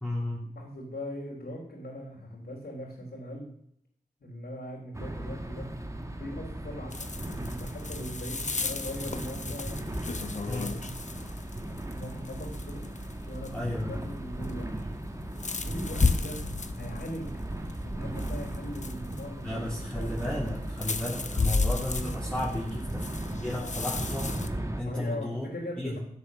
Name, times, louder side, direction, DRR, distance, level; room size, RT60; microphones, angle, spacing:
voice 1, 0.0-0.5 10.5-10.8 13.5-14.0 19.4-23.1 23.4-25.5 25.8-26.0, left 1 dB, 5° left, -6 dB, 3.2 m, -34 dB
voice 2, 0.6-3.5 4.2-5.7 6.2-9.9 10.6-10.7 11.9-12.8 13.3-13.6 13.9-14.9 15.6-16.4 16.8-20.1 24.8-26.0, equal, 85° left, -4 dB, 3.6 m, -40 dB
sound 1, 4.9-24.8, right 1 dB, 20° right, 1.5 m, -37 dB
sound 2, 6.9-24.5, left 3 dB, 50° left, 1.0 m, -35 dB
15.0 x 8.2 x 6.3 m, 0.69 s
wide cardioid pair, 90°, 16 cm